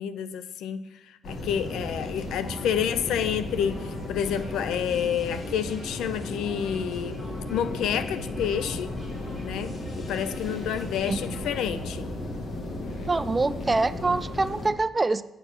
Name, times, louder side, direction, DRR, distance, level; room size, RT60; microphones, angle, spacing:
voice 1, 0.0-7.2 7.5-8.9 9.4-12.1, left 8 dB, 80° left, 0.5 m, -29 dB
sound 1, 1.2-14.7, left 1 dB, 55° left, 1.7 m, -35 dB
sound 2, 2.0-11.5, equal, 30° left, 3.7 m, -50 dB
voice 2, 13.1-15.2, right 3 dB, 20° right, 0.4 m, -25 dB
7.8 x 6.8 x 5.9 m
cardioid pair, 90°, 0 cm